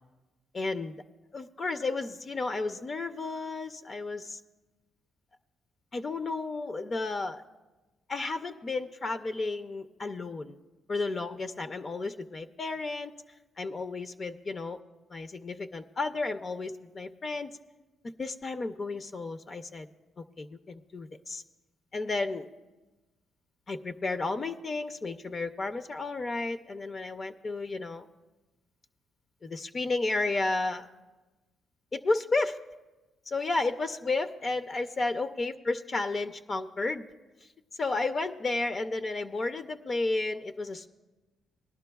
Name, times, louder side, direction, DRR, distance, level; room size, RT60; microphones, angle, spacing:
voice 1, 0.5-1.0 1.3-4.4 5.9-7.4 8.1-10.6 10.9-13.1 13.6-14.8 15.1-17.6 18.2-19.9 20.2-21.4 21.9-22.5 23.7-28.1 29.4-30.9 31.9-32.6 33.3-37.1 37.8-40.9, left 3 dB, 35° left, 7 dB, 0.5 m, -32 dB
19.5 x 11.0 x 2.3 m, 1.2 s
cardioid pair, 90°, 0 cm